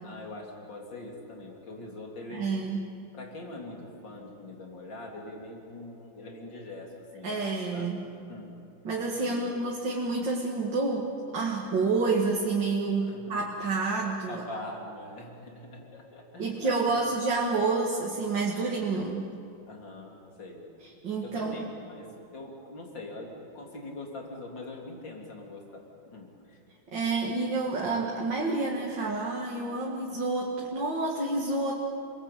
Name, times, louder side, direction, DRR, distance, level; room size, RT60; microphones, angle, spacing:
voice 1, 0.0-2.5 3.1-7.9 8.3-8.5 9.2-9.5 13.0-13.4 14.3-17.1 19.7-20.7 21.2-26.6 27.1-27.2, left 2 dB, 70° left, 0 dB, 4.1 m, -43 dB
voice 2, 2.3-2.9 7.2-8.1 8.8-11.1 11.3-14.4 16.4-19.3 20.8-21.5 26.9-31.8, right 3 dB, 70° right, -2 dB, 2.8 m, -29 dB
28.5 x 21.5 x 8.6 m, 2.6 s
omnidirectional pair, 2.1 m